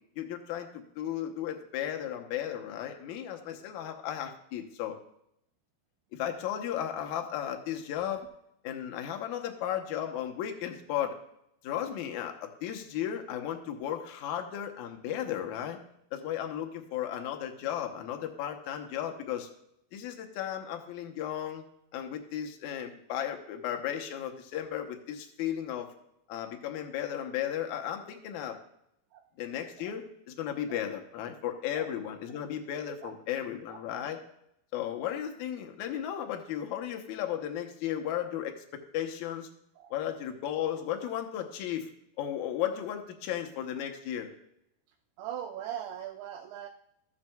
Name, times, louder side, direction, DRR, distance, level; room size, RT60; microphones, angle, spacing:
voice 1, 0.2-4.9 6.1-8.3 8.6-11.2 11.6-15.8 16.1-19.5 19.9-21.6 21.9-25.9 26.3-28.6 29.4-34.2 34.7-38.5 38.9-39.5 39.9-41.9 42.2-44.3, left 10 dB, 85° left, 3 dB, 1.6 m, -35 dB
voice 2, 45.2-46.7, right 10 dB, 85° right, 4 dB, 2.5 m, -40 dB
15.0 x 7.4 x 2.3 m, 0.78 s
omnidirectional pair, 4.7 m